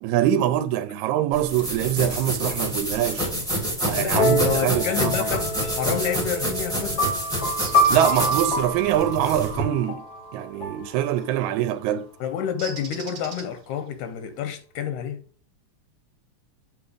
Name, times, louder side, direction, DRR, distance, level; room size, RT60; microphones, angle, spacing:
voice 1, 0.0-3.3 3.8-5.3 7.9-10.0 10.3-12.1, right 11 dB, 80° right, 1.8 m, -24 dB
sound 1, 1.3-9.6, equal, 5° left, 0.3 m, -28 dB
voice 2, 4.0-7.1 12.2-15.2, left 8 dB, 85° left, 2.1 m, -29 dB
sound 2, 4.1-11.7, equal, 65° left, 0.9 m, -27 dB
Bird, 7.6-8.4 11.1-11.3 12.6-13.8, right 5 dB, 65° right, 1.0 m, -39 dB
7.8 x 2.9 x 4.9 m
omnidirectional pair, 3.5 m